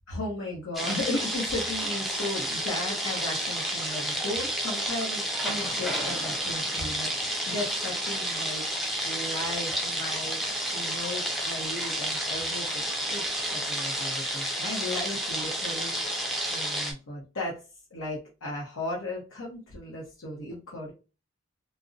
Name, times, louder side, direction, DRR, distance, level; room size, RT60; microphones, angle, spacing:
voice 1, 0.1-10.4 10.7-16.0 16.5-17.6 17.9-20.9, left 1 dB, 80° left, -4 dB, 0.7 m, -36 dB
sound 1, 0.7-16.9, right 1 dB, ahead, 0.4 m, -30 dB
2.5 x 2.0 x 2.4 m, 0.31 s
head